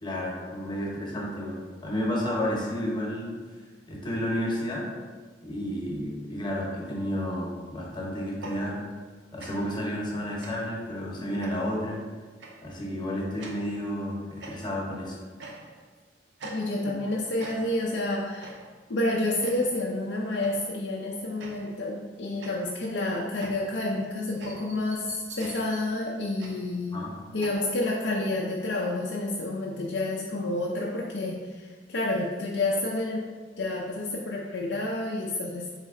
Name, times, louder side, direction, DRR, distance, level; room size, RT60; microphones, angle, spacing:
voice 1, 0.0-3.3 3.9-4.9 5.4-8.8 9.3-12.0 12.6-15.2 26.9-27.1, equal, 25° left, -3 dB, 0.9 m, -31 dB
sound 1, 8.4-9.1 9.4-9.8 10.4-10.8 11.4-11.8 12.4-12.7 13.4-13.8 14.4-14.9 15.4-15.9 16.4-17.1 17.4-17.9 18.4-18.8 19.4-19.8 20.4-20.8 21.4-21.9 22.4-27.5, right 2 dB, 75° right, 0.7 m, -45 dB
voice 2, 16.4-18.5 18.9-27.0 27.3-33.3 33.6-35.7, left 2 dB, 70° left, -3 dB, 0.5 m, -29 dB
4.1 x 3.3 x 3.6 m, 1.4 s
head